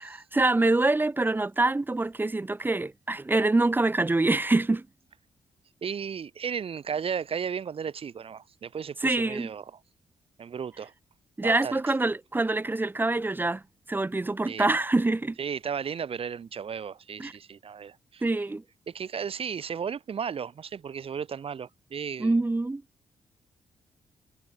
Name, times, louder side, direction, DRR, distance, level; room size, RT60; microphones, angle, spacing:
voice 1, 0.0-4.9 9.0-9.5 11.4-13.6 13.9-15.4 17.2-17.3 18.2-18.6 22.2-22.8, right 2 dB, 15° right, 0.5 m, -25 dB
voice 2, 5.8-9.6 10.4-10.9 11.4-11.8 14.5-14.7 15.4-18.2 18.9-22.4, right 7 dB, 50° right, 0.7 m, -34 dB
supercardioid pair, 45°, 12 cm